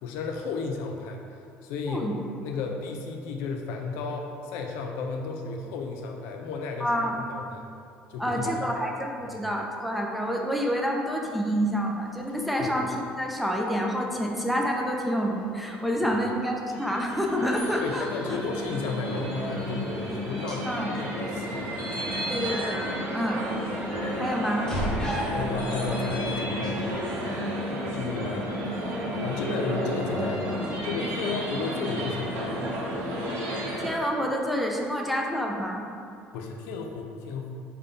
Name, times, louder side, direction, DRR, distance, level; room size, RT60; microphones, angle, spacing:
voice 1, 0.0-1.2 1.6-2.1 2.4-7.6 8.1-8.7 9.2-9.4 12.6-12.8 16.1-16.2 17.8-21.8 22.2-22.5 25.3-27.4 27.9-28.5 29.2-30.4 30.8-32.4 36.3-37.6, left 4 dB, 85° left, 2 dB, 0.4 m, -33 dB
voice 2, 6.8-7.2 8.2-18.4 20.7-20.9 22.3-22.9 23.1-23.4 24.2-24.7 33.8-35.8, equal, ahead, -1 dB, 0.3 m, -28 dB
sound 1, 11.5-27.8, equal, 15° left, 0.9 m, -41 dB
sound 2, 16.7-33.9, equal, 65° right, 0.9 m, -32 dB
3.7 x 2.2 x 3.6 m, 2.4 s
cardioid pair, 130°, 4 cm